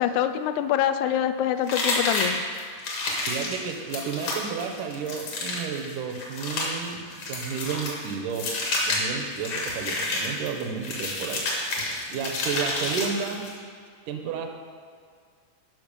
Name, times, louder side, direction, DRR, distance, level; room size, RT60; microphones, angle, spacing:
voice 1, 0.0-2.4, left 10 dB, 90° left, 9 dB, 1.6 m, -25 dB
sound 1, 1.7-13.6, left 2 dB, 60° left, 2.7 m, -30 dB
voice 2, 3.1-13.5 14.1-14.5, right 6 dB, 75° right, 4 dB, 2.3 m, -32 dB
12.0 x 6.0 x 5.3 m, 2.1 s
omnidirectional pair, 3.9 m